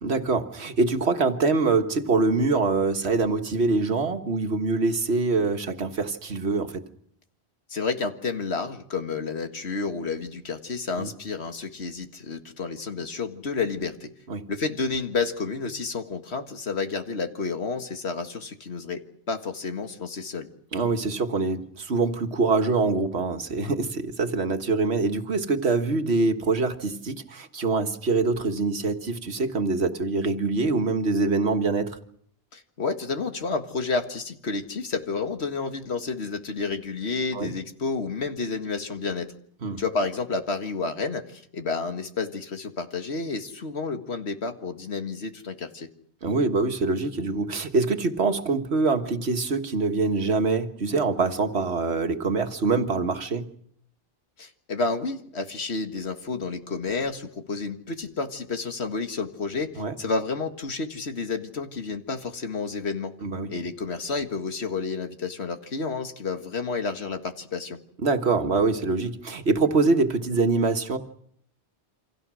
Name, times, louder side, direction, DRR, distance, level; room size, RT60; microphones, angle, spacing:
voice 1, 0.0-6.8 11.0-11.1 14.3-14.5 20.7-32.0 37.3-37.5 39.6-39.8 46.2-53.5 59.8-59.9 63.2-63.5 68.0-71.0, right 3 dB, 80° right, 6 dB, 1.8 m, -24 dB
voice 2, 7.7-14.1 14.5-20.5 32.5-39.3 39.8-45.9 54.4-63.2 63.5-67.8, left 4 dB, 80° left, 7 dB, 2.0 m, -30 dB
28.5 x 25.5 x 6.3 m, 0.68 s
omnidirectional pair, 1.1 m